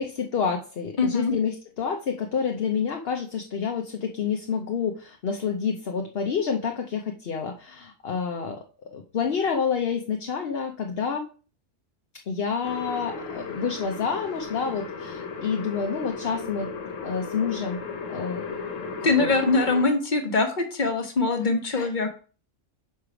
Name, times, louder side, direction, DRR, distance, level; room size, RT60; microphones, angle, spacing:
voice 1, 0.0-8.6 8.9-11.2 12.3-16.7 17.0-17.8 18.1-19.3 21.6-21.9, left 6 dB, 55° left, 4 dB, 1.0 m, -28 dB
voice 2, 1.0-1.3 19.0-22.1, left 3 dB, 40° left, 5 dB, 1.4 m, -23 dB
sound 1, 12.6-19.9, left 5 dB, 75° left, 1.4 m, -35 dB
6.8 x 4.8 x 4.9 m, 0.38 s
omnidirectional pair, 1.3 m